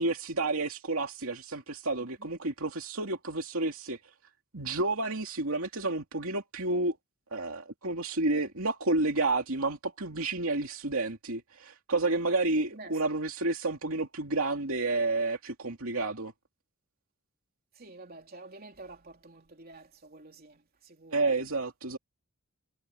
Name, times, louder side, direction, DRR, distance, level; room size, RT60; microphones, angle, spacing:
voice 1, 0.0-4.0 4.5-7.0 7.3-16.3 21.1-22.0, right 2 dB, 65° right, 2.7 m, -30 dB
voice 2, 17.8-19.0 19.2-19.8 20.1-20.3 21.0-21.1, right 2 dB, 45° right, 3.5 m, -48 dB
head